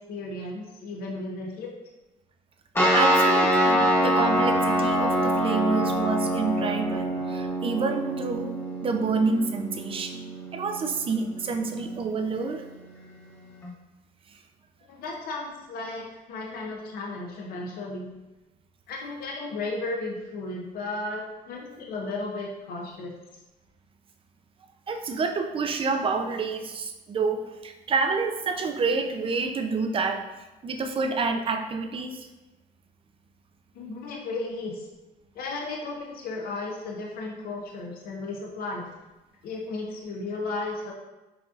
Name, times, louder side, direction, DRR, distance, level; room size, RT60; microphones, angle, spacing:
voice 1, 0.1-1.7 14.9-18.1 18.9-23.1 33.7-34.9 35.4-38.9 39.4-40.9, left 2 dB, 60° left, -1 dB, 0.7 m, -34 dB
sound 1, 2.7-13.7, equal, 15° left, 0.9 m, -26 dB
voice 2, 2.9-8.5 8.8-10.2 10.5-12.6 24.9-30.2 30.6-32.3, right 4 dB, 35° right, 5 dB, 0.5 m, -28 dB
5.8 x 2.6 x 2.4 m, 1.1 s
cardioid pair, 110°, 17 cm